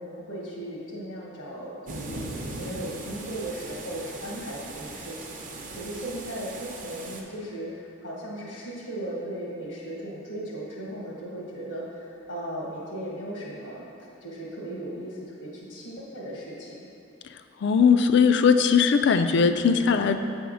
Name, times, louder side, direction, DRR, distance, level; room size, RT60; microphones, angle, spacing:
voice 1, 0.0-13.8 14.2-16.8, right 1 dB, 90° left, -6 dB, 1.3 m, -37 dB
sound 1, 1.9-7.2, right 2 dB, 40° right, 0.7 m, -39 dB
voice 2, 17.6-20.2, left 6 dB, 60° left, 9 dB, 0.3 m, -19 dB
7.8 x 3.5 x 6.2 m, 2.6 s
head